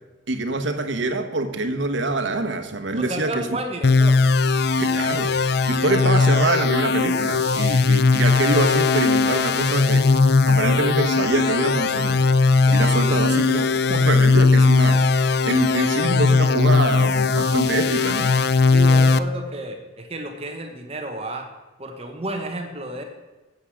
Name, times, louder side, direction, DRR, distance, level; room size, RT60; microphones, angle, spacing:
voice 1, 0.3-3.5 4.8-5.3 5.6-10.1 10.4-12.3 12.7-15.1 15.5-18.3, right 2 dB, 75° right, 7 dB, 1.1 m, -25 dB
voice 2, 2.9-4.2 12.7-13.3 18.7-21.5 21.8-23.0, right 1 dB, 30° right, 4 dB, 1.1 m, -32 dB
sound 1, 3.8-19.2, left 4 dB, 55° left, 0.4 m, -18 dB
9.3 x 8.4 x 6.3 m, 1.2 s
head